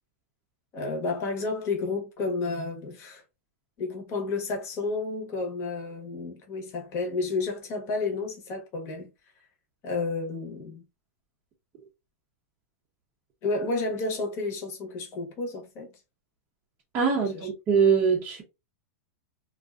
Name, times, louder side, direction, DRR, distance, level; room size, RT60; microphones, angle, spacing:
voice 1, 0.7-3.2 3.8-9.1 9.8-10.8 13.4-15.9 17.3-17.5, left 3 dB, 30° left, 0.9 m, -31 dB
voice 2, 16.9-18.4, right 6 dB, 25° right, 0.6 m, -23 dB
2.5 x 2.3 x 2.2 m
supercardioid pair, 155°, 8 cm